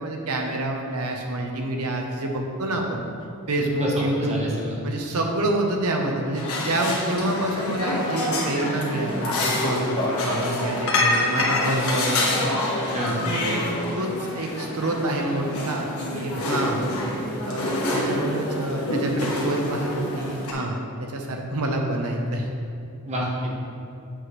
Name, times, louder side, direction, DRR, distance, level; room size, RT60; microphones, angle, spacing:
voice 1, 0.0-3.0 3.5-4.4 4.8-12.7 13.2-13.7 13.9-16.9 17.4-22.5, right 1 dB, 85° right, 2 dB, 0.9 m, -27 dB
voice 2, 3.8-4.8 12.9-13.2 23.1-23.5, equal, 30° right, -4 dB, 1.3 m, -28 dB
sound 1, 6.3-20.5, left 1 dB, 75° left, 1.4 m, -26 dB
8.0 x 6.0 x 3.1 m, 2.5 s
head